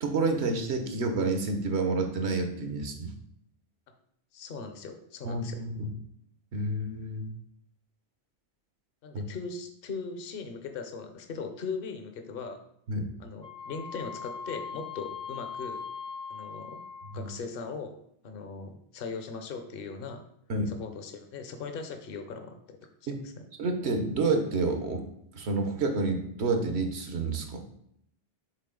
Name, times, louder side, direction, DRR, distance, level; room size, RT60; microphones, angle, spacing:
voice 1, 0.0-3.1 5.2-5.9 6.5-7.3 9.1-9.2 12.9-13.1 17.1-17.3 20.5-20.7 23.1-23.2 23.6-25.0 25.3-27.6, right 3 dB, 80° right, 5 dB, 1.2 m, -29 dB
voice 2, 4.3-5.6 9.0-12.6 13.2-15.8 16.3-16.8 17.1-18.0 18.2-20.3 20.7-23.4, left 4 dB, 60° left, 6 dB, 0.9 m, -39 dB
Wind instrument woodwind instrument, 13.4-17.3, left 6 dB, 5° left, 0.4 m, -40 dB
6.6 x 4.1 x 3.7 m, 0.73 s
omnidirectional pair, 1.1 m